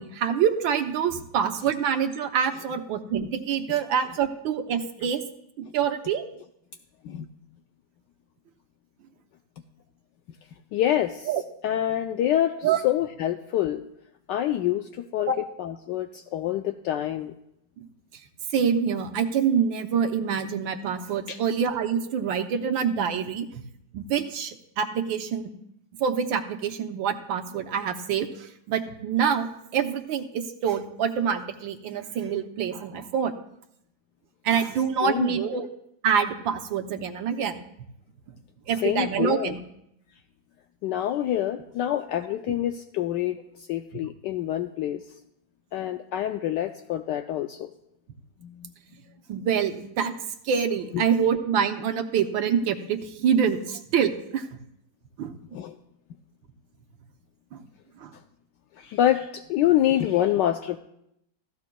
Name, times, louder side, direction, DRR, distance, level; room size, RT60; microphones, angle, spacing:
voice 1, 0.0-5.2 5.6-6.2 11.3-11.4 12.6-12.8 15.3-15.4 17.8-17.9 18.5-23.5 23.9-25.5 26.0-29.5 29.7-33.3 34.4-35.7 36.0-37.6 38.7-39.6 49.3-50.1 50.4-54.6 55.2-55.3 57.5-57.6 58.0-58.1, right 7 dB, 85° right, 6 dB, 1.6 m, -26 dB
voice 2, 10.7-11.3 11.6-13.8 14.3-15.3 15.6-17.3 21.3-21.4 35.0-35.6 38.8-39.5 40.8-45.0 45.7-47.7 48.4-48.7 50.9-51.0 55.5-55.8 58.8-60.8, left 12 dB, 75° left, 6 dB, 1.2 m, -26 dB
16.0 x 14.5 x 2.3 m, 0.77 s
omnidirectional pair, 2.1 m